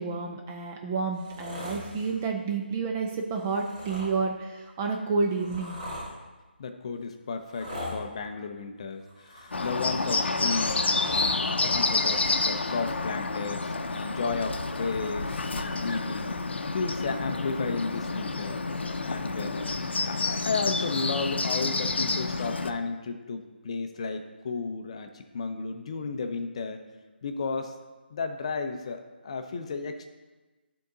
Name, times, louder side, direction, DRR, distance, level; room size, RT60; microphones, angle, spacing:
voice 1, 0.0-5.8, right 4 dB, 15° right, 2 dB, 0.3 m, -30 dB
sound 1, 1.1-2.2 3.4-4.1 4.9-6.1 7.4-8.0 9.0-10.1 10.5-11.4 12.4-12.5, left 1 dB, 35° right, 2.4 m, -40 dB
voice 2, 6.6-16.3 16.7-18.6 19.0-19.7 20.1-26.8 27.2-27.8 28.1-30.1, left 4 dB, 35° left, 6 dB, 0.5 m, -33 dB
Bird, 9.5-22.7, left 3 dB, 80° left, 0.6 m, -29 dB
10.5 x 3.8 x 3.9 m, 1.2 s
figure-of-eight pair, 165°, 6 cm